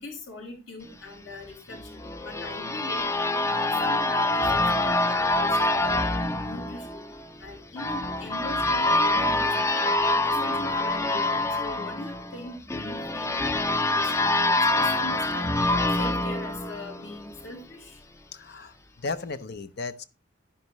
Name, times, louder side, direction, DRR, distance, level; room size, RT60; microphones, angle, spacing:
voice 1, 0.0-3.1 3.4-5.5 5.8-7.1 7.4-9.5 10.0-15.5 16.0-18.0, left 2 dB, 70° left, 2 dB, 4.9 m, -41 dB
sound 1, 1.7-17.4, left 2 dB, 15° left, 0.5 m, -26 dB
voice 2, 18.3-20.0, left 3 dB, 55° left, 12 dB, 0.7 m, -35 dB
10.5 x 10.0 x 3.1 m, 0.28 s
head